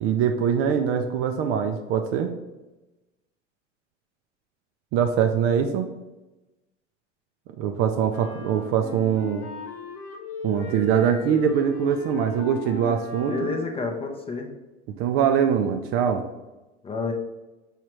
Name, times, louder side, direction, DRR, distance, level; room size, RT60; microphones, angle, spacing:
voice 1, 0.0-2.3 4.9-5.9 7.6-9.5 10.4-13.5 14.9-16.2, right 8 dB, 40° right, 6 dB, 0.4 m, -23 dB
sound 1, 8.1-13.8, left 3 dB, 65° left, 0.9 m, -38 dB
voice 2, 13.3-14.5 16.8-17.1, left 4 dB, 15° left, 3 dB, 0.5 m, -29 dB
4.9 x 3.2 x 3.0 m, 1.1 s
hypercardioid pair, 90°, 38 cm